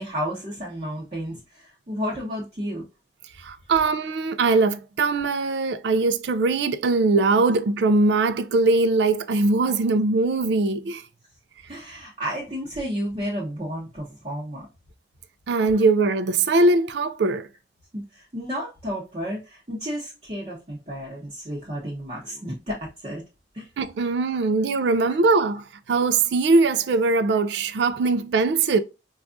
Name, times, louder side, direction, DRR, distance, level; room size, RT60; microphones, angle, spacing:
voice 1, 0.0-2.8 3.7-3.8 11.7-14.7 17.9-23.2 23.5-23.7 24.3-24.5, equal, 35° right, 0.8 m, -32 dB
voice 2, 3.4-11.0 15.5-17.5 23.8-28.8, right 3 dB, 70° right, 0.4 m, -21 dB
4.6 x 2.3 x 2.5 m
head